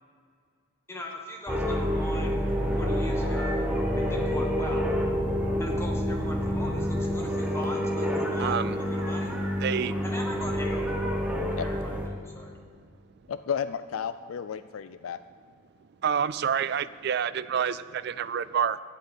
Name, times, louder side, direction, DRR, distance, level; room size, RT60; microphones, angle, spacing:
voice 1, 0.9-2.4 2.7-3.7 4.0-4.9 5.6-9.3 10.0-10.9 11.6-12.6, left 1 dB, 15° left, 0 dB, 1.5 m, -40 dB
sound 1, 1.5-12.1, equal, 5° right, 1.1 m, -28 dB
voice 2, 8.4-8.8 9.6-10.0 16.0-18.8, right 7 dB, 55° right, 15 dB, 0.4 m, -28 dB
voice 3, 13.3-15.2, left 7 dB, 85° left, 12 dB, 0.4 m, -32 dB
10.5 x 8.2 x 8.3 m, 2.2 s
head